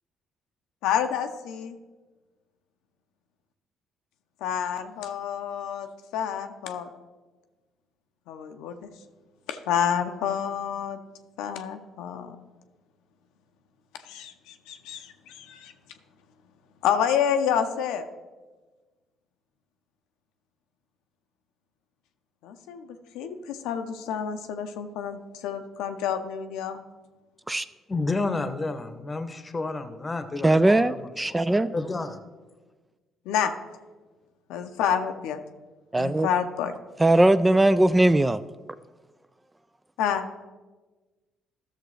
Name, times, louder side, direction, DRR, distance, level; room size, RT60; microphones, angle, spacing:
voice 1, 0.8-1.7 4.4-5.9 6.1-6.9 8.3-8.9 9.5-11.0 11.4-12.4 14.0-15.7 16.8-18.1 22.4-26.8 33.3-33.5 34.5-35.4 36.0-36.7 40.0-40.4, left 8 dB, 80° left, 7 dB, 0.6 m, -29 dB
voice 2, 27.9-30.5 30.8-31.5 31.7-32.2, left 3 dB, 30° left, 9 dB, 0.9 m, -30 dB
voice 3, 30.4-31.7 35.9-36.3 37.0-38.4, right 1 dB, 15° right, 14 dB, 0.3 m, -20 dB
13.0 x 6.5 x 3.2 m, 1.3 s
supercardioid pair, 65°, 0 cm